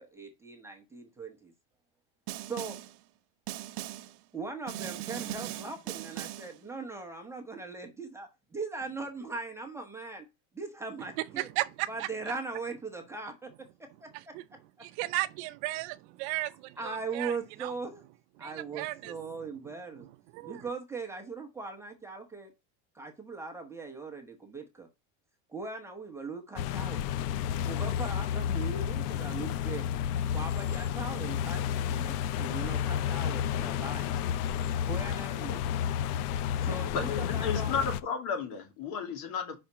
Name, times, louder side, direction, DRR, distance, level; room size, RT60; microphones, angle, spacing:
voice 1, 0.0-1.5 2.5-2.8 4.3-10.3 10.5-11.5 11.9-13.5 14.0-14.1 16.8-18.0 18.4-20.1 20.4-22.5 22.9-24.9 25.5-27.0 27.6-29.9 30.3-31.6 31.9-34.1 34.8-35.6 36.3-37.8, right 4 dB, 5° right, 0.8 m, -40 dB
Snare drum, 2.3-3.0 3.5-4.2 4.7-6.6, right 15 dB, 80° right, 0.9 m, -39 dB
voice 2, 11.4-12.1 14.3-14.4 14.8-17.3 17.6-17.7 18.4-19.2 20.3-20.6, right 18 dB, 50° right, 0.5 m, -35 dB
sound 1, 26.6-38.0, left 9 dB, 90° left, 0.7 m, -31 dB
voice 3, 36.9-39.6, left 6 dB, 60° left, 2.5 m, -33 dB
5.7 x 4.3 x 5.9 m
cardioid pair, 165°, 44 cm